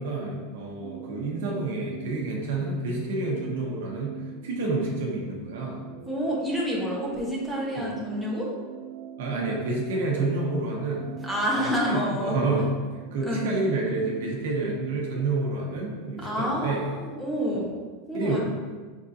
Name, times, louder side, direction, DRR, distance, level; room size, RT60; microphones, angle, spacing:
voice 1, 0.0-4.2 4.4-5.9 7.8-7.9 9.2-11.1 11.6-12.7 13.1-16.8 17.5-17.7 18.1-18.4, right 2 dB, 80° right, -1 dB, 1.1 m, -29 dB
sound 1, 0.8-17.9, right 10 dB, 50° right, 0.3 m, -43 dB
voice 2, 6.0-8.5 11.2-12.4 13.2-13.5 16.2-17.7 18.1-18.4, equal, 5° left, -4 dB, 0.9 m, -28 dB
5.2 x 3.7 x 2.7 m, 1.4 s
supercardioid pair, 150°, 0 cm